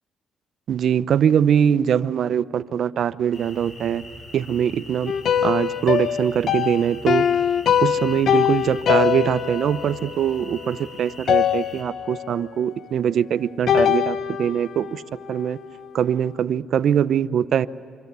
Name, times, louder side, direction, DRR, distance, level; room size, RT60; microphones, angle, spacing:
voice 1, 0.7-4.0 4.3-5.1 5.4-7.3 7.8-15.0 15.3-15.6 15.9-17.7, right 9 dB, 65° right, 15 dB, 0.7 m, -22 dB
sound 1, 3.3-11.8, left 2 dB, 40° left, 5.5 m, -42 dB
sound 2, 5.1-10.9 11.3-12.4 13.7-15.9, left 8 dB, 60° left, 0.9 m, -23 dB
27.5 x 24.5 x 8.2 m, 2.5 s
cardioid pair, 90°, 0 cm